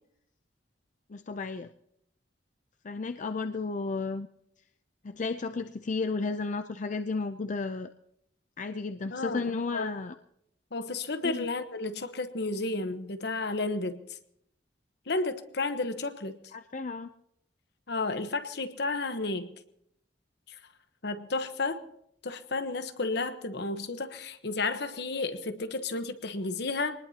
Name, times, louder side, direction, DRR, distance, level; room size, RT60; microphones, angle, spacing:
voice 1, 1.1-1.7 2.8-4.3 5.0-7.9 8.6-10.1 11.2-11.4 16.5-17.1, left 4 dB, 45° left, 8 dB, 0.5 m, -33 dB
voice 2, 9.1-9.9 10.7-14.2 15.1-16.4 17.9-19.5 20.5-20.6 21.0-21.8 22.2-26.9, left 3 dB, 65° left, 9 dB, 1.1 m, -32 dB
23.5 x 19.5 x 2.9 m, 0.74 s
head